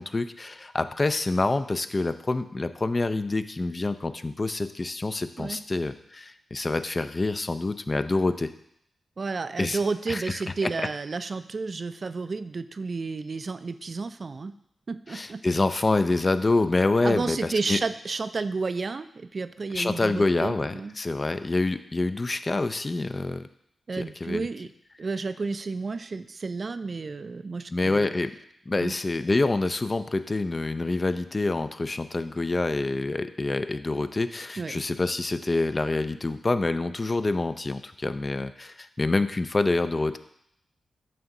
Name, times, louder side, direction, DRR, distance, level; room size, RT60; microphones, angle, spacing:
voice 1, 0.0-8.5 9.6-9.8 10.1-10.7 15.1-17.8 19.7-23.5 23.9-24.5 27.7-28.3 28.7-40.2, left 2 dB, 35° left, 11 dB, 0.4 m, -27 dB
voice 2, 9.2-14.5 14.9-15.4 17.0-20.9 23.9-24.7 25.0-28.1 28.8-28.9 34.6-34.7, right 4 dB, 50° right, 12 dB, 0.3 m, -31 dB
7.5 x 2.7 x 5.8 m, 0.74 s
cardioid pair, 55°, 0 cm